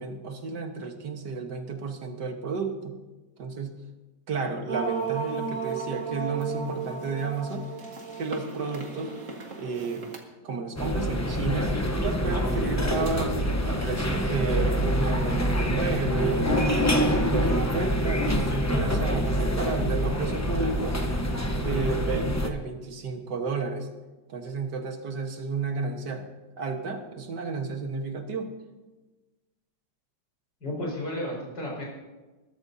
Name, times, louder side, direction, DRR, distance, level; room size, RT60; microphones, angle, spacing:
voice 1, 0.0-3.0 3.4-3.8 4.3-7.6 8.2-9.2 9.6-10.1 10.4-16.5 17.0-21.0 21.5-23.9 24.3-26.3 26.6-28.5, right 4 dB, 65° right, 5 dB, 2.0 m, -32 dB
sound 1, 4.7-10.2, right 6 dB, 45° right, 2.1 m, -34 dB
sound 2, 10.8-22.5, equal, 20° left, 0.4 m, -26 dB
voice 2, 30.6-31.9, left 1 dB, 70° left, -3 dB, 5.4 m, -32 dB
21.5 x 13.5 x 2.8 m, 1.2 s
omnidirectional pair, 2.0 m